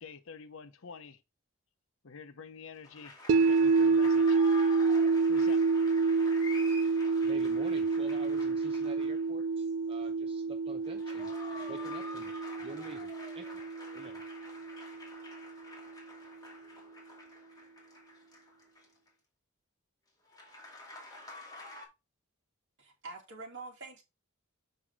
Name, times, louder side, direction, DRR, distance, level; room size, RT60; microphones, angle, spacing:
voice 1, 0.0-1.2 2.0-3.2 3.5-4.4 5.3-5.6, left 5 dB, 65° left, 0.8 m, -48 dB
sound 1, 2.8-9.4 10.7-19.1 20.3-21.9, left 2 dB, 20° left, 2.4 m, -48 dB
sound 2, 3.3-15.4, right 4 dB, 80° right, 0.3 m, -28 dB
voice 2, 7.2-11.3 11.7-13.6 13.9-14.2, right 3 dB, 25° right, 0.9 m, -48 dB
voice 3, 22.8-24.0, right 3 dB, 60° right, 2.6 m, -45 dB
7.0 x 6.0 x 3.5 m
head